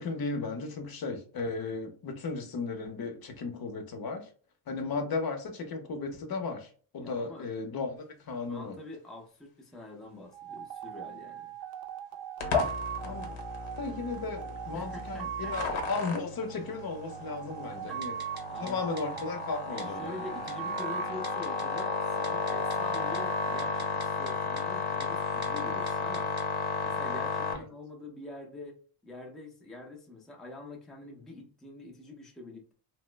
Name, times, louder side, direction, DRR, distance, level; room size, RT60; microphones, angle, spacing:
voice 1, 0.0-4.3 4.7-8.8 13.0-13.4 13.8-18.2 18.6-20.2 27.5-27.6, left 4 dB, 45° left, 0.7 m, -35 dB
voice 2, 7.0-7.5 8.5-11.5 14.7-15.8 17.7-18.8 19.8-26.3 26.8-28.8 29.0-32.7, left 2 dB, ahead, 0.5 m, -45 dB
sound 1, 10.3-24.8, right 10 dB, 50° right, 0.5 m, -41 dB
sound 2, 12.4-27.5, left 5 dB, 75° left, 1.0 m, -33 dB
Typing, 18.0-18.4 18.7-18.8 19.0-19.2 19.8-19.9 20.5-20.8 21.2-21.8 22.1-23.2 23.6-24.3 24.6-24.7 25.0-25.1 25.4-25.6 25.9-26.4 26.8-26.9, right 2 dB, 20° right, 0.9 m, -45 dB
2.9 x 2.0 x 3.2 m
cardioid pair, 135°, 50 cm